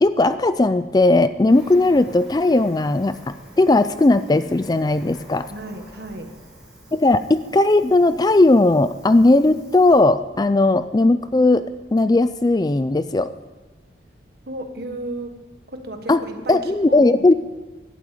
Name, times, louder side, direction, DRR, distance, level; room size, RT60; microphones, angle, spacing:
voice 1, 0.0-5.5 6.9-11.6 11.9-13.3 16.1-16.2 16.5-17.3, left 2 dB, 20° left, 13 dB, 0.3 m, -17 dB
Cricket, 1.5-10.0, right 1 dB, 5° right, 4.8 m, -46 dB
voice 2, 5.5-6.3 14.5-15.4 15.7-17.3, right 1 dB, 55° right, 6 dB, 1.5 m, -34 dB
17.5 x 11.5 x 5.0 m, 1.2 s
head